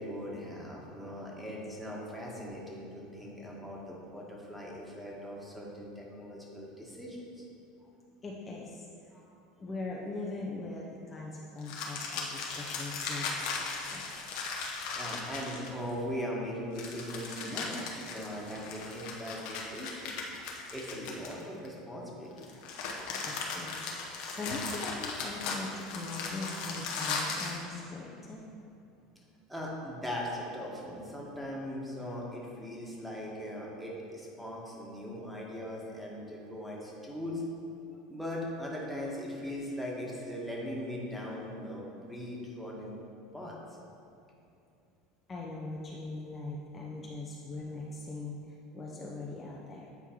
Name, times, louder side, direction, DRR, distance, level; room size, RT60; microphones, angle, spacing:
voice 1, 0.0-7.5 9.1-9.3 14.9-20.1 20.7-22.5 29.5-37.4 38.1-42.9 43.3-43.6, equal, 5° right, -4 dB, 1.4 m, -39 dB
voice 2, 8.2-9.1 9.6-14.1 23.3-28.4 45.3-49.9, left 2 dB, 25° left, -3 dB, 0.6 m, -41 dB
sound 1, 11.6-15.9 16.7-21.7 22.4-27.6, left 4 dB, 60° left, 0.9 m, -37 dB
8.3 x 4.5 x 3.0 m, 2.6 s
hypercardioid pair, 75°, 0 cm